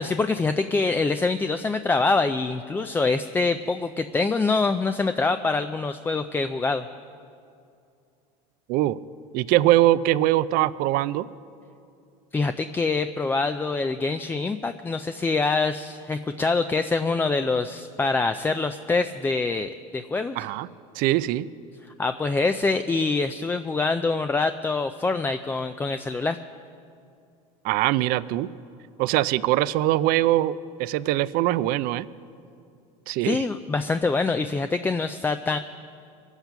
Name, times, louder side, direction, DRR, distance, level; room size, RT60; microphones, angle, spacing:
voice 1, 0.0-6.9 12.3-20.5 22.0-26.4 33.2-35.6, left 3 dB, 10° left, 9 dB, 0.3 m, -25 dB
voice 2, 9.3-11.3 20.4-20.7 21.0-21.5 27.6-28.5 29.0-32.1 33.1-33.4, right 15 dB, 60° right, 16 dB, 0.5 m, -22 dB
22.5 x 8.1 x 5.8 m, 2.5 s
supercardioid pair, 115°, 17 cm